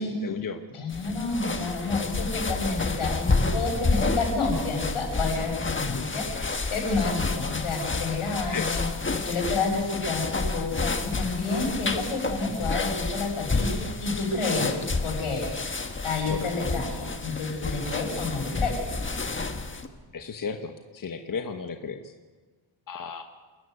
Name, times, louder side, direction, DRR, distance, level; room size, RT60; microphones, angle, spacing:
voice 1, 0.0-0.6 5.9-6.1 8.5-8.7 14.6-14.7 16.3-16.5 20.1-22.0 22.9-23.2, left 5 dB, 40° left, 6 dB, 1.2 m, -34 dB
voice 2, 0.7-8.9 9.2-15.5 16.0-18.7, left 3 dB, 85° left, 2 dB, 7.5 m, -29 dB
sound 1, 0.9-19.9, left 3 dB, 25° left, 1.5 m, -30 dB
28.0 x 13.5 x 9.6 m, 1.4 s
wide cardioid pair, 155°, 49 cm